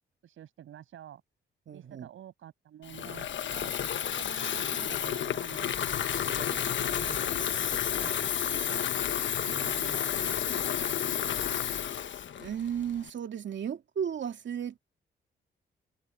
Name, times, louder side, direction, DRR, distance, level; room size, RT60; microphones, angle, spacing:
voice 1, 0.2-1.2 1.7-5.9 6.1-8.9 9.4-11.6, right 11 dB, 80° right, 6.8 m, -48 dB
voice 2, 1.7-2.1 9.4-9.8 12.4-14.8, right 8 dB, 65° right, 2.6 m, -35 dB
Water tap faucet / Fill (with liquid), 2.8-13.1, left 9 dB, 65° left, 1.3 m, -31 dB
supercardioid pair, 60°, 21 cm